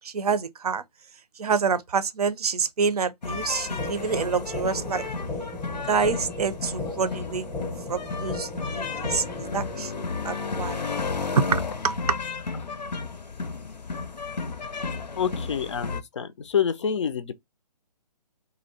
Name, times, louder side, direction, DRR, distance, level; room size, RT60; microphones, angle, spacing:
voice 1, 0.0-0.8 1.4-5.1 5.7-7.5 7.9-10.8 11.2-12.2, right 5 dB, 65° right, 0.5 m, -27 dB
sound 1, 3.2-16.0, left 4 dB, 90° left, 0.6 m, -33 dB
sound 2, 3.8-9.8, left 2 dB, 5° left, 0.7 m, -36 dB
voice 2, 15.2-17.3, left 7 dB, 45° left, 0.4 m, -27 dB
2.6 x 2.0 x 3.9 m
figure-of-eight pair, 145°, 21 cm